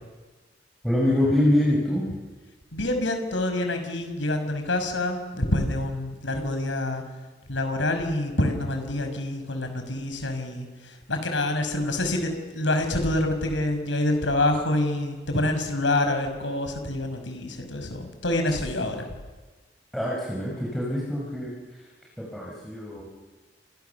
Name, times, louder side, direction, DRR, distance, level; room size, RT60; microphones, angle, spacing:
voice 1, 0.8-2.2 19.9-21.5 22.2-23.1, left 1 dB, ahead, -5 dB, 5.3 m, -25 dB
voice 2, 2.7-7.0 7.5-19.1, left 1 dB, 90° left, 6 dB, 5.6 m, -27 dB
30.0 x 27.5 x 7.0 m, 1.3 s
head